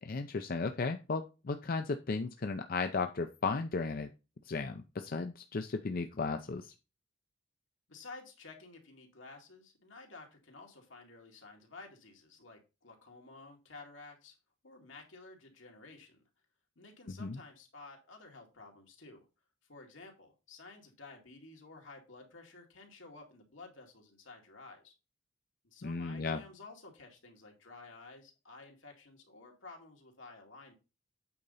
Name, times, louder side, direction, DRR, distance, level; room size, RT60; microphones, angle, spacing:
voice 1, 0.0-4.1 4.5-6.7 17.2-17.4 25.8-26.4, left 4 dB, 50° left, 7 dB, 0.5 m, -35 dB
voice 2, 7.9-14.4 14.6-16.2 16.8-19.2 19.7-24.9 25.6-30.7, left 3 dB, 80° left, 2 dB, 2.3 m, -53 dB
8.6 x 3.9 x 5.5 m, 0.29 s
head